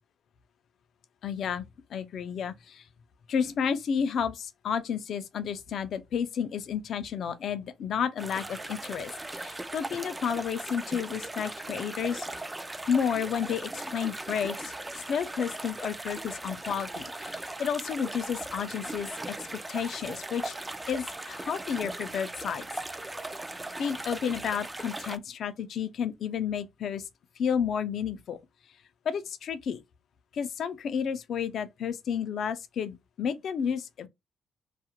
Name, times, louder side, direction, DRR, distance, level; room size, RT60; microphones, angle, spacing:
voice 1, 1.2-1.7 1.9-2.8 3.3-12.3 12.9-19.4 19.7-20.6 20.9-22.7 23.8-27.1 27.4-28.4 29.1-29.8 30.3-34.1, left 7 dB, 65° left, 0.4 m, -31 dB
sound 1, 8.2-25.2, right 2 dB, 15° right, 0.3 m, -38 dB
2.3 x 2.0 x 2.8 m
cardioid pair, 90°, 0 cm